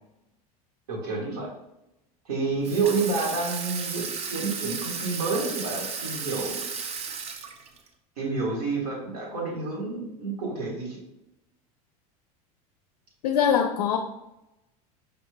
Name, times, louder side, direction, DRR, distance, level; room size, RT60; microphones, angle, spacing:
voice 1, 0.9-1.5 2.2-7.0 8.2-11.0, right 4 dB, 85° right, -2 dB, 1.4 m, -29 dB
Water tap faucet / Sink (filling or washing), 2.6-7.9, right 6 dB, 35° right, 0.5 m, -34 dB
voice 2, 13.2-14.0, left 8 dB, 85° left, 6 dB, 0.4 m, -22 dB
5.0 x 3.1 x 2.2 m, 0.90 s
hypercardioid pair, 90°, 19 cm